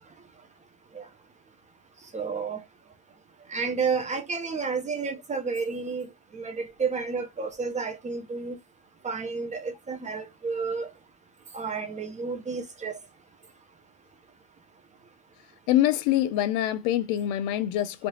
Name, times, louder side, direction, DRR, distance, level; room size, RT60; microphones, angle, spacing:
voice 1, 2.1-2.6 3.5-6.1 6.3-8.6 9.0-10.9 11.5-13.0, right 5 dB, 15° right, 0.5 m, -31 dB
voice 2, 15.7-18.1, left 13 dB, 55° left, 0.5 m, -25 dB
3.4 x 2.8 x 2.6 m
supercardioid pair, 145°, 47 cm